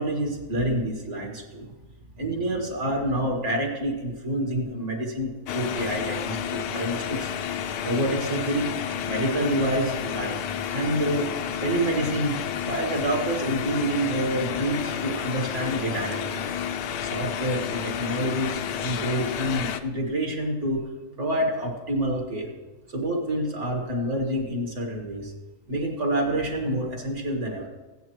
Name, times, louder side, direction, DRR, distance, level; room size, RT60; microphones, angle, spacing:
voice 1, 0.0-1.7 2.2-7.3 7.8-8.7 9.0-10.4 10.7-11.3 11.6-12.4 12.6-16.6 17.0-20.8 21.2-22.5 22.9-25.3 25.7-27.7, right 1 dB, 50° right, 1 dB, 2.0 m, -27 dB
sound 1, 5.5-19.8, left 8 dB, 75° left, 1.1 m, -31 dB
16.0 x 9.3 x 3.1 m, 1.2 s
omnidirectional pair, 1.7 m